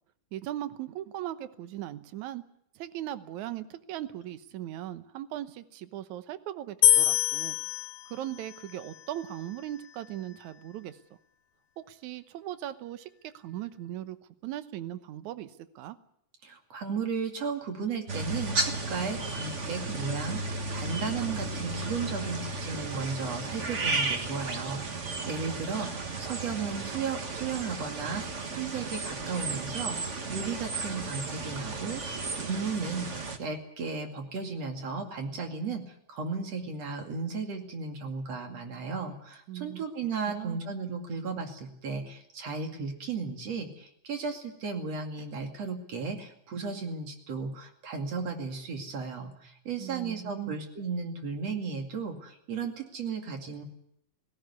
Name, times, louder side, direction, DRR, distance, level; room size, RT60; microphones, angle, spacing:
voice 1, 0.3-2.4 2.8-7.6 8.1-11.0 11.8-14.2 14.4-16.0 39.5-39.9 40.3-40.6 49.8-50.6, right 13 dB, 75° right, 12 dB, 2.3 m, -38 dB
sound 1, 6.8-10.1, left 11 dB, 85° left, 2.5 m, -27 dB
voice 2, 16.4-53.6, right 5 dB, 55° right, 4 dB, 3.5 m, -35 dB
sound 2, 18.1-33.4, right 3 dB, 40° right, 1.1 m, -34 dB
18.0 x 17.5 x 9.6 m, 0.74 s
omnidirectional pair, 3.6 m